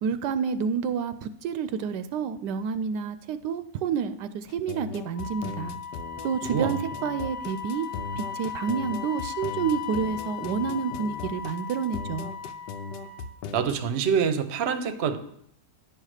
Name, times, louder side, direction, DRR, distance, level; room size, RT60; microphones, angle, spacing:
voice 1, 0.0-5.8 6.2-7.9 8.2-12.3, right 6 dB, 80° right, 12 dB, 1.2 m, -29 dB
sound 1, 4.5-13.8, left 5 dB, 85° left, 1.4 m, -38 dB
Wind instrument woodwind instrument, 5.1-13.4, left 7 dB, 45° left, 0.7 m, -37 dB
voice 2, 13.5-15.2, right 7 dB, 50° right, 10 dB, 0.9 m, -26 dB
9.8 x 5.7 x 6.4 m, 0.69 s
omnidirectional pair, 1.9 m